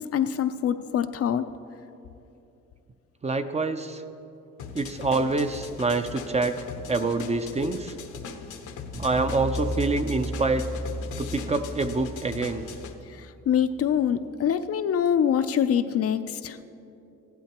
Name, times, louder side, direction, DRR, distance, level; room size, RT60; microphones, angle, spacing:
voice 1, 0.0-1.4 13.1-16.6, left 8 dB, 50° left, 10 dB, 0.5 m, -25 dB
voice 2, 3.2-4.0 4.7-6.6 6.9-7.9 9.0-10.7 11.2-12.7, right 3 dB, 20° right, 9 dB, 0.5 m, -26 dB
sound 1, 4.6-12.9, left 5 dB, 80° left, 0.9 m, -40 dB
sound 2, 8.9-13.3, left 1 dB, 90° right, 2.9 m, -35 dB
15.0 x 11.5 x 2.9 m, 2.8 s
cardioid pair, 90°, 30 cm